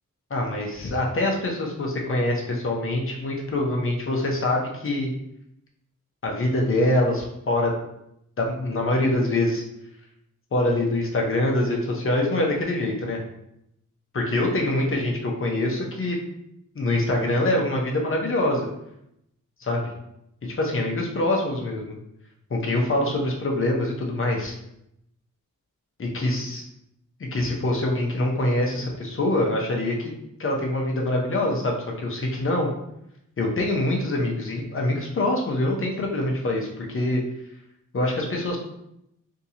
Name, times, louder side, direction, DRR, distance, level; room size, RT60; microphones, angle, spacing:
voice 1, 0.3-5.1 6.2-7.8 8.4-9.6 10.5-13.2 14.1-16.2 16.7-18.7 19.6-19.9 20.4-22.0 22.5-24.6 26.0-26.6 27.2-30.1 30.4-32.7 33.4-37.2 37.9-38.6, left 1 dB, 40° left, 0 dB, 0.7 m, -24 dB
3.5 x 2.8 x 2.8 m, 0.80 s
wide cardioid pair, 145°, 32 cm